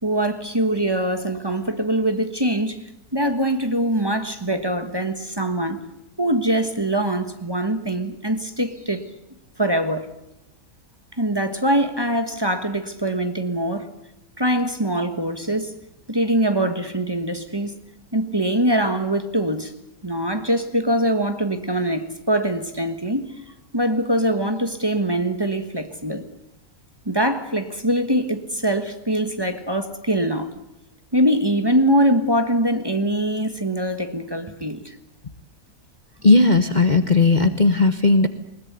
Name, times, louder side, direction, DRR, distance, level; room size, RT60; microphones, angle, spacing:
voice 1, 0.0-2.8 3.1-5.8 6.2-9.1 9.6-10.1 11.2-13.9 14.4-15.7 16.1-17.7 18.1-19.7 20.0-23.3 23.7-26.2 27.0-30.5 31.1-34.9, right 1 dB, 15° right, 1.4 m, -23 dB
voice 2, 36.2-38.3, left 3 dB, 35° left, 1.0 m, -16 dB
21.0 x 20.5 x 9.5 m
omnidirectional pair, 1.6 m